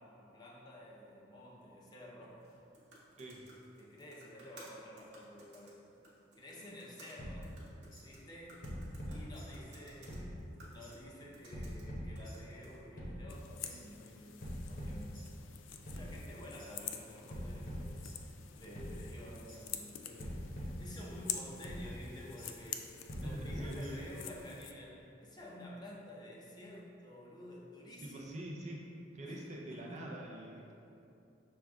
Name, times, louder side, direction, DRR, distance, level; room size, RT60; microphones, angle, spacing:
voice 1, 0.0-2.5 3.4-5.8 6.4-7.5 8.0-8.6 9.1-15.2 15.8-28.3 29.2-30.0 30.6-30.7, left 1 dB, 20° left, -4 dB, 0.5 m, -51 dB
sound 1, 2.3-12.9, right 2 dB, 60° right, 0.9 m, -60 dB
sound 2, 7.2-8.1 8.6-9.8 10.1-10.9 11.5-12.6 13.0-13.8 14.4-15.6 15.9-16.7 17.3-18.5 18.8-19.6 20.2-21.4 21.6-22.5 23.1-24.2, equal, 50° left, 0.9 m, -44 dB
sound 3, 13.3-24.7, left 9 dB, 80° left, 0.3 m, -47 dB
voice 2, 23.2-24.0 28.0-28.9 29.1-30.7, right 1 dB, 35° right, -2 dB, 0.4 m, -44 dB
6.1 x 2.3 x 3.5 m, 2.7 s
head